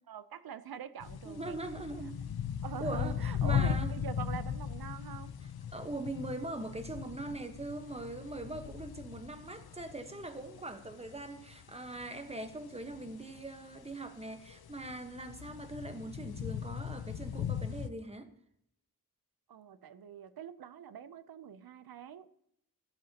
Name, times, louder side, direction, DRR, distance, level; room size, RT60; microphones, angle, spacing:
voice 1, 0.1-1.6 2.6-5.3 19.5-22.3, right 8 dB, 75° right, 0.7 m, -44 dB
sound 1, 1.0-17.9, left 8 dB, 80° left, 0.8 m, -38 dB
voice 2, 1.2-2.2 2.8-3.9 5.7-18.3, right 2 dB, 15° right, 1.2 m, -41 dB
15.5 x 12.5 x 2.9 m
wide cardioid pair, 140°, 37 cm